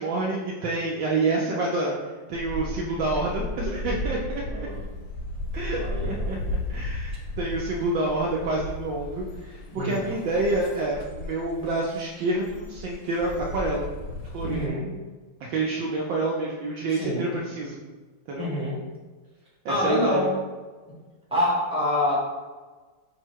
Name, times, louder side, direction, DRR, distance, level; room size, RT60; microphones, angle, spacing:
voice 1, 0.0-1.9 2.3-4.7 5.5-6.4 6.7-13.9 14.3-14.7 15.4-17.8 18.3-18.5 19.6-20.3, right 2 dB, 75° right, -2 dB, 1.1 m, -28 dB
sound 1, 2.3-14.7, left 1 dB, 70° left, 1.2 m, -34 dB
voice 2, 5.8-6.4 9.7-10.0 14.4-14.9 16.9-17.3 18.4-18.8 19.7-20.3 20.9-21.0 21.3-22.1, left 1 dB, 5° right, -7 dB, 0.8 m, -26 dB
5.5 x 2.1 x 4.5 m, 1.3 s
omnidirectional pair, 2.4 m